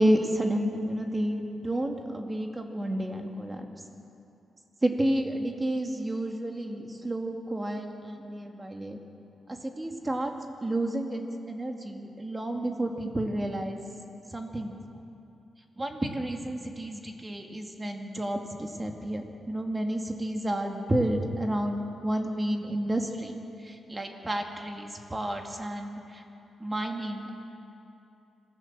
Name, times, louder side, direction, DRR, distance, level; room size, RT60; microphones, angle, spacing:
voice 1, 0.0-3.7 4.8-9.0 9.5-10.3 10.6-11.2 11.5-13.8 14.3-14.8 15.8-23.3 23.6-26.2 26.6-27.3, right 1 dB, 20° right, 3 dB, 2.3 m, -30 dB
26.0 x 16.0 x 7.5 m, 2.8 s
cardioid pair, 105°, 0 cm